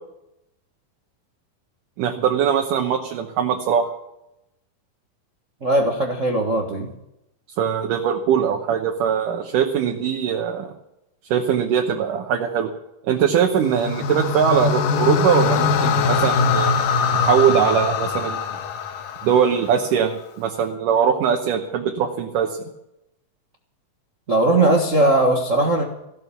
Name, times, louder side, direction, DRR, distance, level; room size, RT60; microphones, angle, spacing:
voice 1, 2.0-3.9 7.6-10.7 11.3-12.7 13.1-16.8 17.1-18.4 19.2-22.5, right 8 dB, 70° right, 3 dB, 2.6 m, -21 dB
voice 2, 5.6-6.9 24.3-25.8, right 1 dB, 50° right, 1 dB, 0.9 m, -19 dB
sound 1, 13.6-19.9, left 5 dB, 75° left, 2.6 m, -22 dB
16.0 x 12.5 x 7.1 m, 0.86 s
omnidirectional pair, 4.0 m